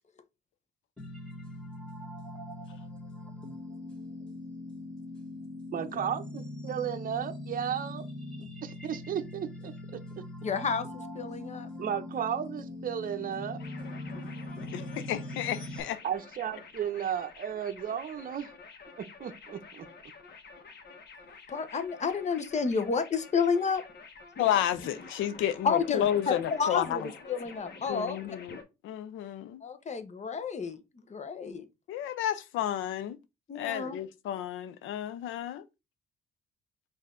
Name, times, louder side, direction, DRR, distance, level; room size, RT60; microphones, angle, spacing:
sound 1, 1.0-15.8, left 1 dB, 5° left, 1.5 m, -41 dB
voice 1, 5.7-8.1 8.6-10.2 11.8-13.6 16.0-18.5 19.0-19.9, right 9 dB, 45° right, 0.7 m, -34 dB
voice 2, 10.4-11.7 21.5-23.8 25.6-28.4 29.6-31.7 33.5-34.0, left 5 dB, 35° left, 0.8 m, -31 dB
sound 2, 13.6-28.6, left 4 dB, 55° left, 1.1 m, -48 dB
voice 3, 14.7-16.0 24.4-27.1 27.9-28.6 28.8-29.6 31.9-33.2 33.5-35.6, left 11 dB, 85° left, 0.5 m, -31 dB
5.5 x 2.6 x 3.7 m
cardioid pair, 90°, 20 cm